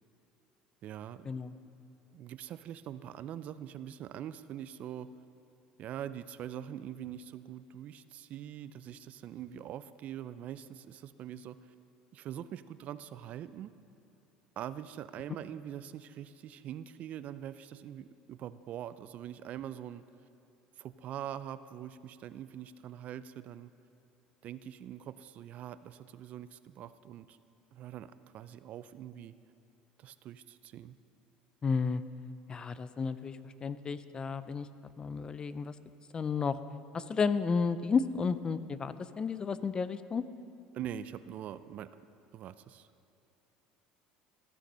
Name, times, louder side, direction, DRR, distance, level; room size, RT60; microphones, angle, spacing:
voice 1, 0.8-1.3 2.1-5.1 5.8-11.7 12.1-13.7 14.6-20.0 20.8-23.7 24.4-27.4 27.7-29.3 30.0-31.0 40.7-41.9 42.3-42.9, right 10 dB, 50° right, 14 dB, 0.4 m, -43 dB
voice 2, 31.6-32.0 32.5-34.7 35.0-35.7 36.1-36.6 36.9-40.2, left 5 dB, 30° left, 14 dB, 0.4 m, -32 dB
14.5 x 6.6 x 5.5 m, 2.9 s
supercardioid pair, 100°, 3 cm